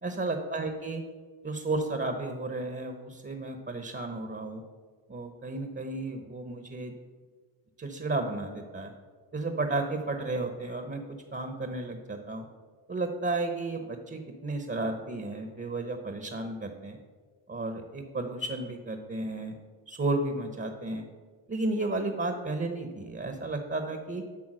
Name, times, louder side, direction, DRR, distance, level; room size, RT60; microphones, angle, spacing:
voice 1, 0.0-1.0 1.4-4.6 5.1-6.9 7.8-8.9 9.3-12.5 12.9-17.0 17.5-19.6 19.9-21.1 21.5-24.2, right 2 dB, 25° right, 6 dB, 1.0 m, -33 dB
8.6 x 5.8 x 6.2 m, 1.5 s
cardioid pair, 70°, 44 cm